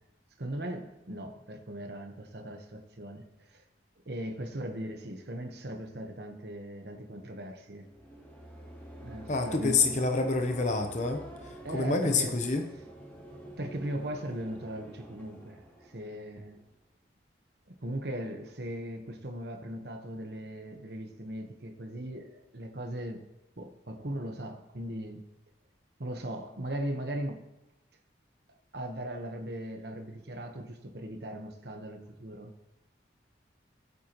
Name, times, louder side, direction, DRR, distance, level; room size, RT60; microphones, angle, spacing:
voice 1, 0.4-3.6 4.0-7.9 9.0-10.0 11.6-12.4 13.6-16.6 17.7-23.3 23.6-25.2 26.0-27.4 28.7-32.5, right 1 dB, 60° right, 1.2 m, -38 dB
sound 1, 7.7-16.7, right 1 dB, 10° left, 2.6 m, -48 dB
voice 2, 9.3-12.7, left 3 dB, 40° left, 0.8 m, -28 dB
19.0 x 8.3 x 3.1 m
head